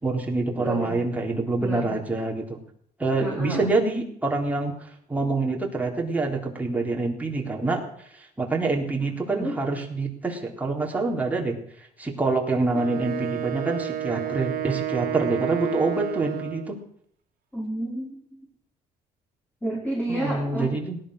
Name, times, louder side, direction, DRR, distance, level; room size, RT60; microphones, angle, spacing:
voice 1, 0.0-2.6 3.0-4.7 5.1-7.8 8.1-11.6 12.0-16.8 20.1-21.0, right 3 dB, 10° right, -1 dB, 3.7 m, -26 dB
voice 2, 0.6-0.9 1.6-1.9 3.2-3.7 9.0-9.6 17.5-18.2 19.6-20.7, right 1 dB, 10° left, -3 dB, 4.3 m, -30 dB
Wind instrument woodwind instrument, 12.7-16.7, right 11 dB, 60° right, 2.0 m, -30 dB
18.0 x 11.5 x 6.5 m, 0.67 s
cardioid pair, 110°, 17 cm